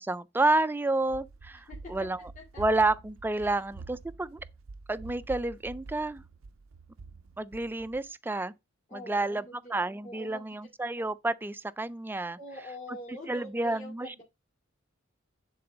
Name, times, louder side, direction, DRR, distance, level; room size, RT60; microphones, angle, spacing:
voice 1, 0.0-1.6 1.9-2.2 2.6-4.4 4.9-6.2 7.4-8.5 8.9-9.4 9.7-12.4 13.3-14.2, right 2 dB, 10° right, 0.3 m, -29 dB
Run, 1.0-8.1, right 3 dB, 85° right, 0.5 m, -47 dB
voice 2, 1.5-2.1 2.3-2.7 3.4-3.6 8.9-9.8 10.0-10.6 12.4-14.2, left 1 dB, 40° left, 2.5 m, -45 dB
10.0 x 4.0 x 3.9 m
head